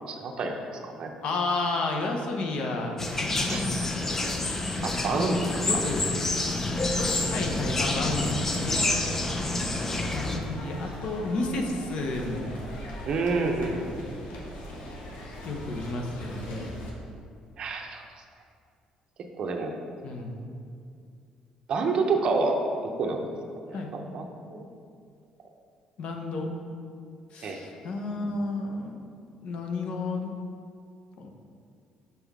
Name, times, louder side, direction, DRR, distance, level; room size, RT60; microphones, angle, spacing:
voice 1, 0.1-1.1 3.5-3.6 4.8-5.8 9.4-9.5 13.1-14.4 17.6-18.0 19.4-19.7 21.7-22.6 23.0-23.2 23.6-24.6 27.4-27.6, right 3 dB, 45° right, 2 dB, 0.7 m, -29 dB
voice 2, 1.2-3.8 5.6-6.3 7.3-8.9 10.1-12.6 15.4-16.7 20.0-20.5 23.7-23.9 26.0-26.5 27.3-29.1 29.4-30.3 31.2-31.3, left 2 dB, 60° left, 2 dB, 0.8 m, -31 dB
sound 1, 3.0-10.4, left 2 dB, 20° left, 0.5 m, -28 dB
sound 2, 7.2-16.9, equal, 90° left, 1.1 m, -41 dB
5.9 x 5.5 x 3.5 m, 2.3 s
cardioid pair, 145°, 2 cm